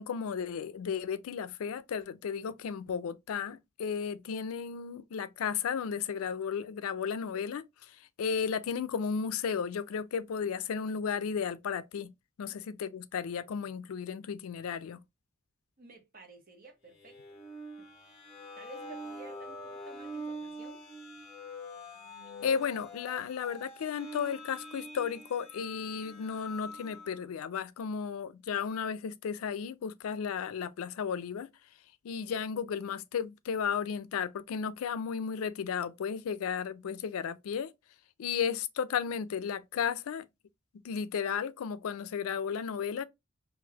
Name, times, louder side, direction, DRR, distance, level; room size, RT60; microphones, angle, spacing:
voice 1, 0.0-12.1 12.4-15.0 22.4-31.5 32.0-37.7 38.2-40.3 40.8-43.0, left 7 dB, 90° left, 0.4 m, -34 dB
voice 2, 15.8-17.2 17.6-17.9 18.6-20.8, right 3 dB, 40° right, 0.9 m, -53 dB
sound 1, 17.0-27.2, equal, 30° left, 1.0 m, -44 dB
3.9 x 2.5 x 2.8 m
head